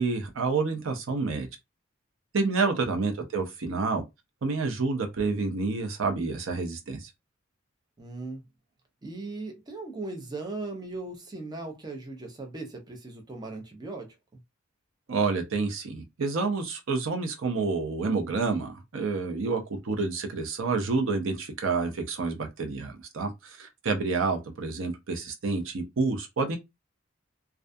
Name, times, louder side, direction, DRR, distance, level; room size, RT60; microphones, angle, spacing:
voice 1, 0.0-1.5 2.3-4.0 4.4-7.0 15.1-26.6, right 4 dB, 70° right, 0.6 m, -28 dB
voice 2, 8.0-8.4 9.0-14.4, right 2 dB, 20° right, 0.5 m, -38 dB
2.3 x 2.2 x 2.5 m
head